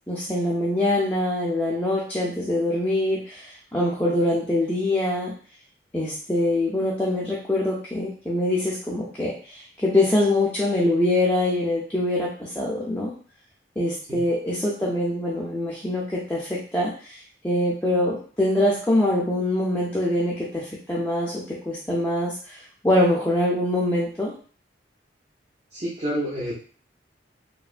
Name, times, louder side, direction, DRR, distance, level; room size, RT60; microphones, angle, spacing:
voice 1, 0.1-5.3 5.9-13.1 13.8-17.2 17.4-22.6 22.8-24.3, left 1 dB, 10° left, -6 dB, 0.5 m, -24 dB
voice 2, 25.7-26.5, equal, 35° right, -10 dB, 0.8 m, -28 dB
3.2 x 2.2 x 2.4 m, 0.41 s
head